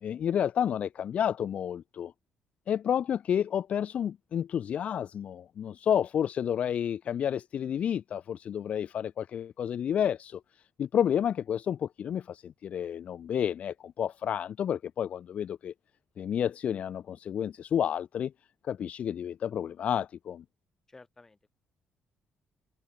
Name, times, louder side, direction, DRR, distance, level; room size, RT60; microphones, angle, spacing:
voice 1, 0.0-2.1 2.7-10.4 10.8-15.7 16.2-18.3 18.6-20.4, left 9 dB, 50° left, 0.7 m, -30 dB
voice 2, 20.9-21.5, left 3 dB, 15° left, 7.3 m, -54 dB
cardioid pair, 150°, 3 cm